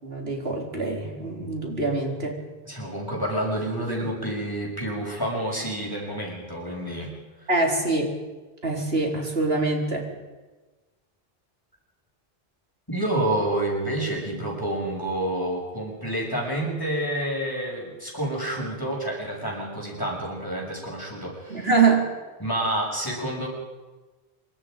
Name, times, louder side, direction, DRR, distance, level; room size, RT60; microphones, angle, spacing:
voice 1, 0.0-2.4 7.5-8.1 8.6-10.0 21.5-22.1, right 3 dB, 75° right, 0 dB, 4.4 m, -24 dB
voice 2, 2.7-7.1 12.9-21.7 22.4-23.5, right 1 dB, 20° left, -2 dB, 6.4 m, -28 dB
26.5 x 24.0 x 5.2 m, 1.3 s
omnidirectional pair, 1.0 m